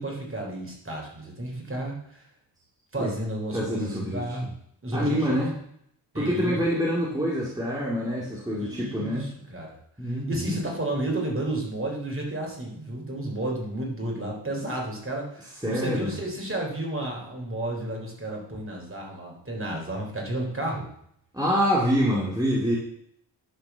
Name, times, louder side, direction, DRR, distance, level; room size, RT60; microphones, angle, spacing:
voice 1, 0.0-2.2 2.9-4.5 4.8-5.4 6.1-6.6 8.6-9.7 10.0-20.9, right 1 dB, 30° right, -1 dB, 3.8 m, -32 dB
voice 2, 3.5-4.2 4.9-5.5 6.1-9.3 10.0-10.6 15.6-16.1 21.3-22.8, equal, 10° right, -5 dB, 2.5 m, -26 dB
10.5 x 5.1 x 6.9 m, 0.69 s
cardioid pair, 80°, 43 cm